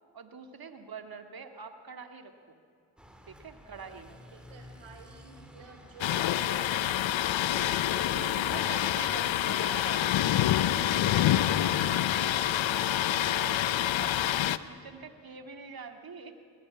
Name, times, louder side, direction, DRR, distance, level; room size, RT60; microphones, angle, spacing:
voice 1, 0.1-2.3 3.3-4.1 7.6-7.8 8.1-10.1 10.4-11.1 11.6-11.7 13.0-16.4, right 5 dB, 50° right, 6 dB, 2.3 m, -45 dB
sound 1, 3.0-9.4, equal, ahead, 3.0 m, -51 dB
voice 2, 4.1-8.7 11.3-12.9, right 4 dB, 70° right, 2 dB, 4.6 m, -50 dB
Thunder, 6.0-14.6, left 12 dB, 70° left, 0.8 m, -27 dB
20.5 x 17.0 x 8.6 m, 2.4 s
supercardioid pair, 50°, 47 cm